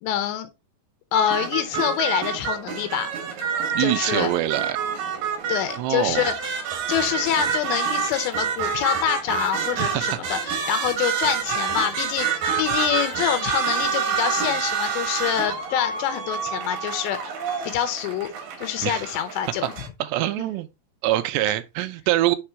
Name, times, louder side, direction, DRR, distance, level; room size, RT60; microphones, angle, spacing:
voice 1, 0.0-0.5 1.1-3.1 3.8-4.3 5.5-6.4 6.9-17.2 17.6-18.3 18.6-19.7 20.4-20.5, left 10 dB, 80° left, 2.9 m, -26 dB
sound 1, 1.1-19.9, right 7 dB, 60° right, 2.7 m, -28 dB
voice 2, 3.7-4.8 5.8-6.3 9.8-10.2 18.8-19.1 20.0-20.7 21.0-22.4, right 15 dB, 85° right, 2.7 m, -24 dB
6.8 x 3.6 x 4.4 m
omnidirectional pair, 5.1 m